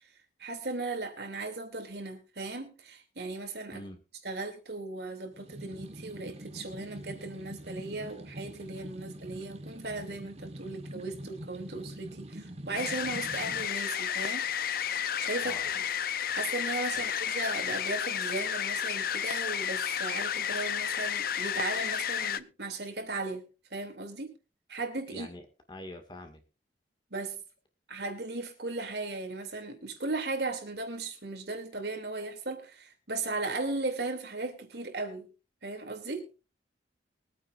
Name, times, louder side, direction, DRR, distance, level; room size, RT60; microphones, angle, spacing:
voice 1, 0.4-3.8 4.2-14.5 15.2-15.8 16.3-23.4 23.7-24.3 24.7-25.3 27.1-27.4 27.9-35.3 35.6-36.3, right 3 dB, 65° right, 5 dB, 2.7 m, -37 dB
sound 1, 5.3-13.7, right 1 dB, 35° right, 1.3 m, -44 dB
sound 2, 12.7-22.4, left 9 dB, 55° left, 0.5 m, -32 dB
voice 2, 25.1-25.4 25.7-26.4, left 1 dB, 25° left, 6 dB, 1.9 m, -44 dB
23.0 x 9.0 x 2.5 m, 0.31 s
head